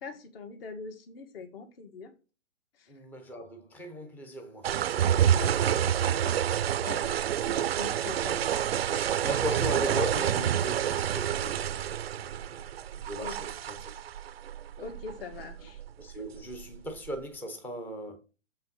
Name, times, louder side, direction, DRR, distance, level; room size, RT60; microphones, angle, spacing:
voice 1, 0.0-2.1 2.8-2.9 7.0-7.1 7.5-9.0 9.4-9.6 13.2-13.3 14.8-15.8, left 4 dB, 45° left, 1.9 m, -42 dB
voice 2, 2.9-4.8 5.2-6.4 6.8-7.3 9.2-12.7 13.0-13.9 16.0-18.2, right 1 dB, 5° left, 0.6 m, -38 dB
sound 1, 4.6-17.2, right 10 dB, 50° right, 0.5 m, -28 dB
6.9 x 5.5 x 4.0 m
hypercardioid pair, 135°, 39 cm